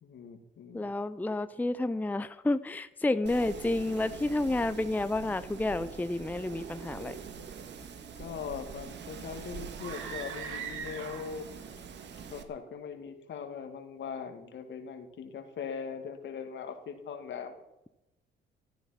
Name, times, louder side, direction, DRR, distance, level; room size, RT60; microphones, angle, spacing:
voice 1, 0.0-0.9 8.2-11.5 12.3-17.6, left 6 dB, 65° left, 7 dB, 2.2 m, -40 dB
voice 2, 0.7-7.1, left 2 dB, 10° left, 12 dB, 0.5 m, -30 dB
Wind, 3.2-12.4, right 6 dB, 60° right, 1.8 m, -44 dB
sound 1, 9.7-11.5, right 7 dB, 85° right, 2.6 m, -41 dB
13.5 x 13.0 x 5.8 m, 0.94 s
cardioid pair, 90°, 20 cm